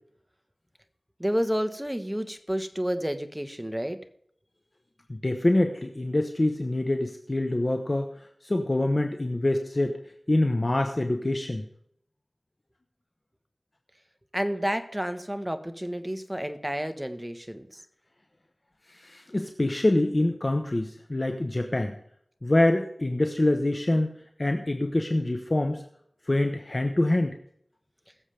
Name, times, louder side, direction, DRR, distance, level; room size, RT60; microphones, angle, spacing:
voice 1, 1.2-4.0 14.3-17.8, equal, 10° right, 8 dB, 1.2 m, -30 dB
voice 2, 5.1-8.1 8.4-10.0 10.3-11.6 19.0-21.9 22.4-24.1 24.4-25.8 26.3-27.3, left 1 dB, 40° left, 5 dB, 1.0 m, -25 dB
21.5 x 7.3 x 3.4 m, 0.70 s
wide cardioid pair, 50°, 0 cm